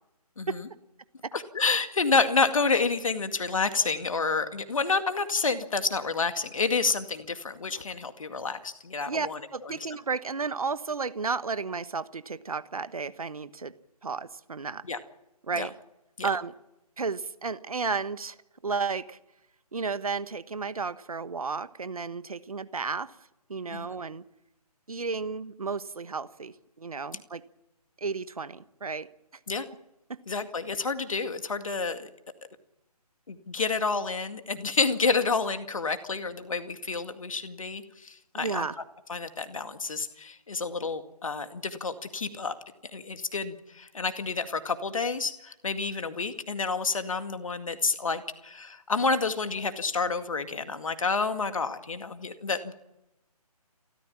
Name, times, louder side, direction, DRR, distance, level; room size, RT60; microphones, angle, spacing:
voice 1, 0.4-0.7 1.3-9.4 14.9-15.0 15.6-15.7 16.2-16.3 23.7-23.9 29.5-29.7 30.3-32.1 33.3-38.6 39.1-42.5 42.9-52.7, left 4 dB, 55° left, 9 dB, 2.1 m, -29 dB
voice 2, 9.1-13.7 14.0-14.8 15.4-15.7 16.2-16.5 17.0-18.4 18.6-19.2 19.7-23.1 23.5-24.2 24.9-27.4 28.0-29.1 30.1-30.2 38.3-38.8, right 4 dB, 65° right, 14 dB, 1.3 m, -33 dB
29.5 x 14.0 x 7.4 m, 0.89 s
figure-of-eight pair, 150°, 20 cm